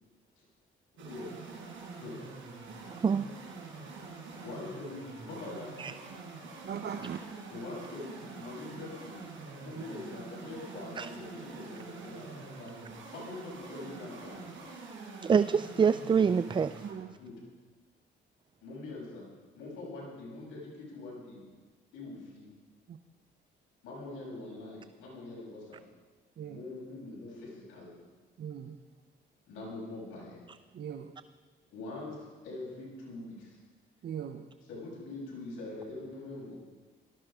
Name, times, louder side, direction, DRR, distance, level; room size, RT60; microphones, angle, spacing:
voice 1, 0.9-1.3 1.9-2.2 4.4-5.8 7.5-9.2 9.6-12.7 13.1-14.5 17.0-17.4 18.6-19.2 19.5-21.4 21.9-22.5 23.8-25.8 26.4-27.9 29.5-30.4 31.7-33.6 34.7-36.6, left 2 dB, 85° left, -4 dB, 6.7 m, -43 dB
sound 1, 1.0-17.0, right 4 dB, 75° right, 4.4 m, -46 dB
voice 2, 6.6-7.2 16.8-17.1 22.9-23.0 26.4-26.6 28.4-28.8 30.7-31.1 34.0-34.4, right 8 dB, 55° right, 6 dB, 0.9 m, -39 dB
voice 3, 15.2-16.7, right 6 dB, 25° right, 14 dB, 0.4 m, -25 dB
18.0 x 14.0 x 5.1 m, 1.4 s
cardioid pair, 90°, 20 cm